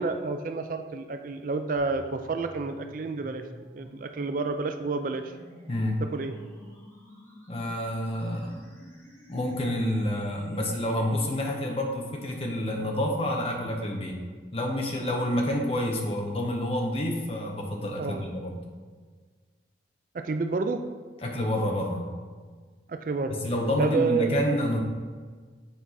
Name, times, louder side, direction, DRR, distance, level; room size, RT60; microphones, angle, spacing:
voice 1, 0.0-3.4 3.7-5.3 6.0-6.3 18.0-18.3 20.1-20.8 22.9-23.4 23.8-24.4, right 4 dB, 45° right, 7 dB, 0.4 m, -29 dB
sound 1, 1.8-11.8, equal, 15° left, 1.3 m, -50 dB
voice 2, 5.7-6.0 7.5-8.7 9.3-14.2 14.5-18.6 21.2-22.1 23.3-24.8, left 1 dB, 30° left, 1 dB, 0.9 m, -28 dB
7.1 x 4.5 x 4.2 m, 1.5 s
head